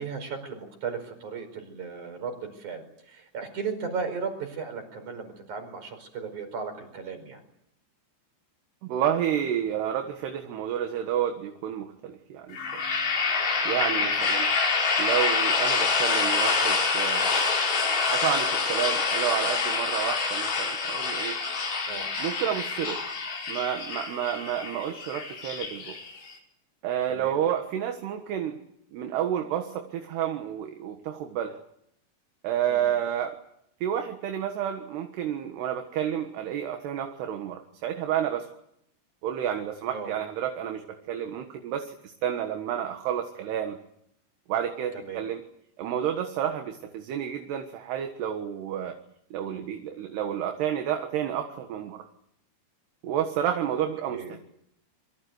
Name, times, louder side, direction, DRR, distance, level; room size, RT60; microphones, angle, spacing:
voice 1, 0.0-7.4 14.0-14.1 21.9-22.1 27.1-27.4 32.7-32.9 39.9-40.1 44.9-45.2 49.4-49.6 54.1-54.4, right 5 dB, 45° right, 7 dB, 6.1 m, -36 dB
voice 2, 8.8-12.8 13.7-14.5 15.0-17.4 18.1-21.4 22.2-23.0 23.5-26.0 26.8-28.6 28.9-31.6 32.4-33.4 33.8-38.5 39.2-43.8 44.5-45.4 45.8-49.0 49.3-52.1 53.0-54.4, right 10 dB, 70° right, 5 dB, 3.5 m, -30 dB
sound 1, 12.5-26.3, left 4 dB, 90° left, 7.4 m, -26 dB
27.5 x 23.0 x 8.1 m, 0.76 s
omnidirectional pair, 5.2 m